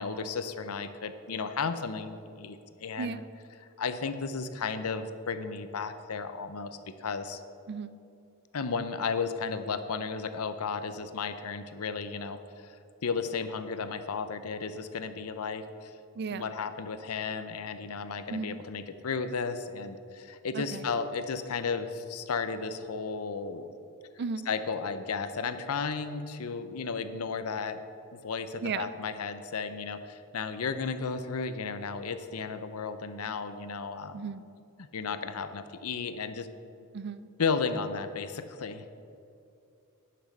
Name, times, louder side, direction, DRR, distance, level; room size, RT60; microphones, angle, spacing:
voice 1, 0.0-3.2 3.8-7.4 8.5-12.8 13.0-15.9 16.3-23.7 24.5-27.8 28.1-34.3 34.8-36.5 37.4-38.8, left 5 dB, 85° left, 11 dB, 0.6 m, -34 dB
voice 2, 3.0-3.3 7.7-8.0 16.2-16.5 18.3-18.6 20.5-20.8 24.2-24.5 28.6-28.9 34.1-34.5 36.9-37.3, right 5 dB, 50° right, 13 dB, 0.4 m, -35 dB
10.0 x 6.1 x 6.6 m, 2.6 s
head